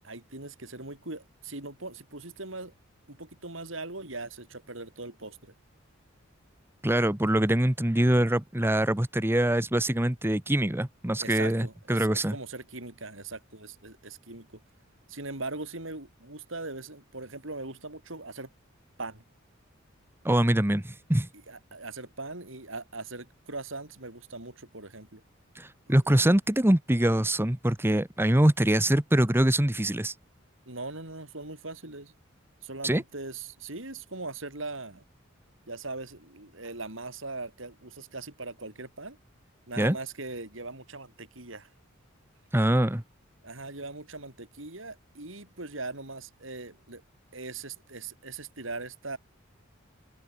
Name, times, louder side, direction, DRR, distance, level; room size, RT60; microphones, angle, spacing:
voice 1, 0.0-2.7 3.1-5.5 11.2-14.5 15.1-18.5 19.0-19.2 21.5-25.2 25.9-26.0 30.7-32.1 32.6-35.0 35.7-39.2 39.7-41.7 43.4-47.0 47.3-49.2, right 3 dB, 70° right, 5.7 m, -40 dB
voice 2, 6.8-12.4 20.2-21.3 25.5-30.1 32.8-33.0 39.8-40.0 42.5-43.0, right 1 dB, 10° right, 1.1 m, -24 dB
open air
head